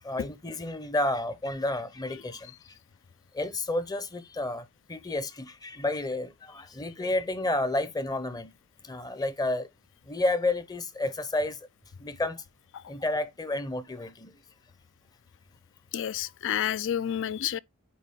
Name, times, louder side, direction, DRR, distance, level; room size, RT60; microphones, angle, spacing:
voice 1, 0.0-2.6 3.3-8.5 8.8-9.7 10.1-11.6 12.0-12.4 12.9-14.4, left 2 dB, 20° left, 0.7 m, -31 dB
voice 2, 15.9-17.6, left 10 dB, 60° left, 0.4 m, -29 dB
8.6 x 3.6 x 3.6 m
head